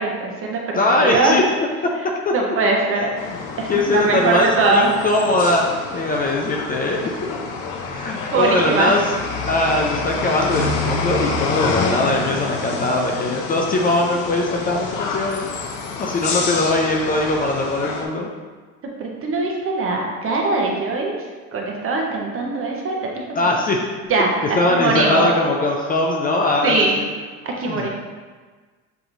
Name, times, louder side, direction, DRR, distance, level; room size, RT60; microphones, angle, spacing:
voice 1, 0.0-1.4 2.3-3.1 3.6-4.9 8.3-8.9 19.0-23.6 24.1-25.3 26.6-27.0 27.4-27.9, right 3 dB, 40° right, -1 dB, 0.9 m, -21 dB
voice 2, 0.8-1.4 2.0-2.3 3.3-3.4 3.7-7.1 7.9-9.0 9.5-15.5 16.0-18.3 23.4-23.9 24.6-27.1 27.7-27.9, left 2 dB, 25° left, 0 dB, 0.5 m, -21 dB
sound 1, 3.2-18.0, left 4 dB, 65° left, 0.7 m, -27 dB
6.8 x 2.9 x 2.6 m, 1.4 s
supercardioid pair, 95°, 35 cm